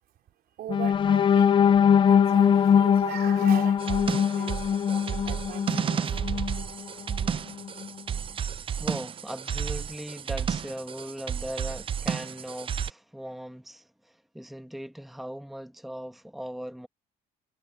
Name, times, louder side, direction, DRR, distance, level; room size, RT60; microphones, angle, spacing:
voice 1, 0.6-6.5, right 13 dB, 70° right, 4.0 m, -40 dB
sound 1, 0.7-6.6 7.1-7.3 7.6-7.9, left 8 dB, 30° left, 0.3 m, -22 dB
sound 2, 3.8-12.9, right 7 dB, 30° right, 0.5 m, -32 dB
voice 2, 8.8-16.9, equal, ahead, 1.3 m, -39 dB
cardioid pair, 110°, 17 cm